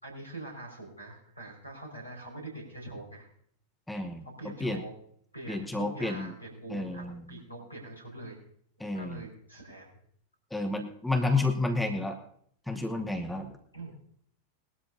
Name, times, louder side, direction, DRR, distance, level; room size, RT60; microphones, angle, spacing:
voice 1, 0.0-3.3 4.4-4.9 5.3-8.4 8.8-9.9 11.2-11.5 11.9-12.0 13.7-13.9, right 2 dB, 85° left, 2 dB, 5.1 m, -44 dB
voice 2, 3.9-4.2 4.6-4.8 5.5-6.3 6.7-7.2 8.8-9.2 10.5-12.2 12.7-13.5, left 2 dB, 5° left, 5 dB, 1.1 m, -30 dB
20.5 x 12.5 x 2.7 m, 0.63 s
figure-of-eight pair, 90°, 0 cm